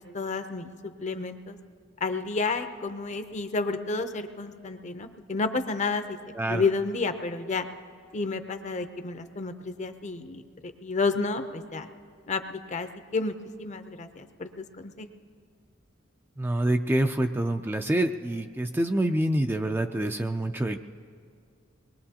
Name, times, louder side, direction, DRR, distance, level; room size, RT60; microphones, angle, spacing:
voice 1, 0.0-1.6 2.0-6.2 6.5-7.7 8.1-10.4 10.8-11.9 12.3-15.1, left 3 dB, 40° left, 8 dB, 0.6 m, -31 dB
voice 2, 16.4-20.8, right 1 dB, 10° right, 6 dB, 0.3 m, -26 dB
24.5 x 21.0 x 2.8 m, 2.2 s
head